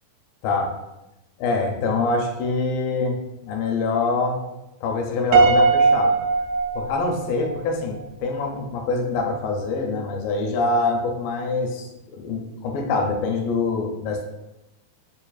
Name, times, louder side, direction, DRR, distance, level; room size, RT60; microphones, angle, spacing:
voice 1, 0.4-0.7 1.4-4.4 4.8-6.2 6.8-14.2, left 3 dB, 80° left, 2 dB, 2.2 m, -25 dB
Piano, 5.3-7.6, right 4 dB, 80° right, 2.0 m, -19 dB
7.0 x 2.4 x 2.3 m, 0.93 s
omnidirectional pair, 4.1 m